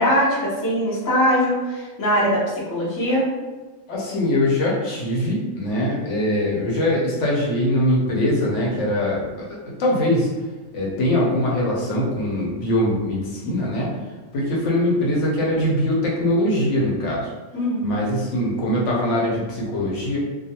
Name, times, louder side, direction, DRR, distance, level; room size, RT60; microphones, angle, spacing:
voice 1, 0.0-3.2 17.5-17.9, equal, 25° left, -7 dB, 0.4 m, -21 dB
voice 2, 3.9-10.3 10.7-13.9 14.3-17.3 17.8-20.2, left 1 dB, 65° left, -4 dB, 0.9 m, -22 dB
2.3 x 2.2 x 2.8 m, 1.2 s
omnidirectional pair, 1.4 m